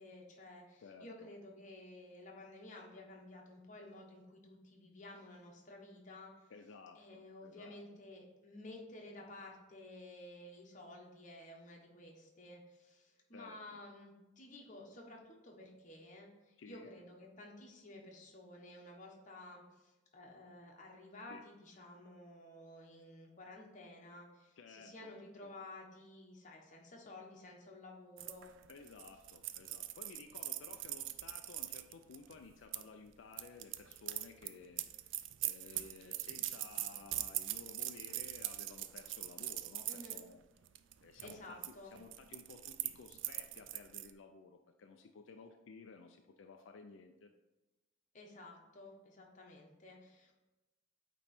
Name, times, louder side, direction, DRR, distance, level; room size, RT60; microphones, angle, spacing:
voice 1, 0.0-6.5 6.9-28.5 39.9-40.2 41.2-41.9 48.1-50.4, left 1 dB, 40° left, 0 dB, 1.2 m, -53 dB
voice 2, 0.8-1.3 6.5-7.8 13.3-13.6 16.6-16.9 21.3-21.4 24.6-25.1 25.4-25.5 28.7-40.4 41.0-47.3, left 4 dB, 80° left, 5 dB, 0.4 m, -55 dB
sound 1, 28.2-32.8 33.3-40.2 40.7-40.9 41.2-41.7 42.0-44.1, right 14 dB, 70° right, 0.3 m, -42 dB
8.6 x 3.1 x 4.3 m, 1.1 s
head